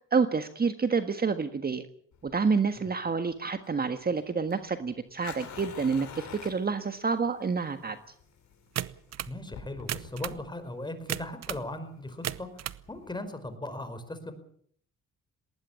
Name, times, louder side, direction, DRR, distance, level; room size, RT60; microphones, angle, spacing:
voice 1, 0.0-1.8 2.2-8.0, right 5 dB, 30° right, 9 dB, 1.6 m, -28 dB
Fire, 2.1-13.2, left 7 dB, 70° left, 6.1 m, -48 dB
sound 1, 8.8-9.4 9.8-10.4 11.1-11.7 12.1-12.8, right 11 dB, 60° right, 0.9 m, -35 dB
voice 2, 9.3-14.3, left 1 dB, 15° left, 10 dB, 4.9 m, -38 dB
19.5 x 18.5 x 8.6 m, 0.62 s
cardioid pair, 90°, 30 cm